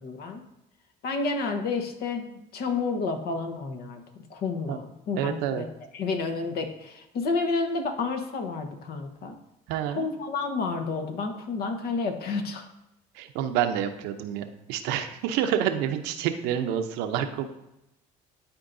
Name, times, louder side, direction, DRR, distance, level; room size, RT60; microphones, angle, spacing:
voice 1, 0.0-0.4 1.0-4.0 4.3-5.6 5.9-9.3 9.9-12.6, left 4 dB, 65° left, 5 dB, 1.1 m, -30 dB
voice 2, 5.2-5.6 9.7-10.1 13.2-17.5, right 9 dB, 85° right, 7 dB, 0.7 m, -28 dB
11.5 x 4.5 x 2.6 m, 0.89 s
supercardioid pair, 95°, 18 cm